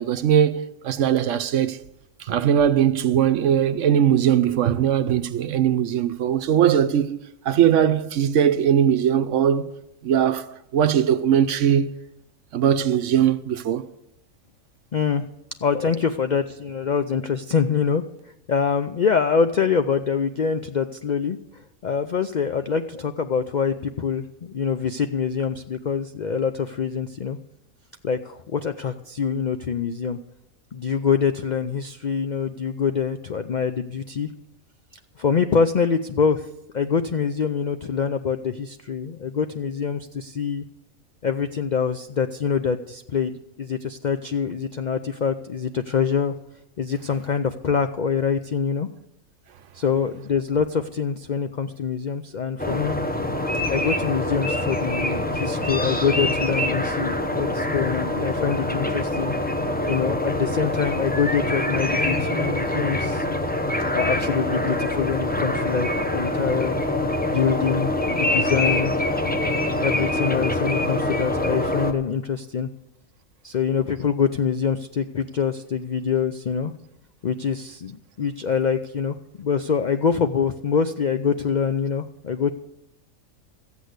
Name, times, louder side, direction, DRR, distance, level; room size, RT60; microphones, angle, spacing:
voice 1, 0.0-1.8 2.2-7.2 7.5-9.7 10.0-11.9 12.5-13.9, right 9 dB, 65° right, 0.9 m, -20 dB
voice 2, 14.9-15.3 15.6-18.0 18.5-27.4 28.0-30.2 30.7-34.3 35.2-36.5 36.7-40.6 41.2-43.3 43.6-46.3 46.8-48.9 49.7-52.9 53.7-59.4 59.9-63.2 63.9-66.8 67.2-68.9 69.8-72.7 73.4-76.7 77.2-82.5, left 6 dB, 65° left, 0.4 m, -25 dB
sound 1, 52.6-71.9, left 1 dB, 10° left, 0.7 m, -25 dB
14.5 x 8.3 x 8.0 m
omnidirectional pair, 1.5 m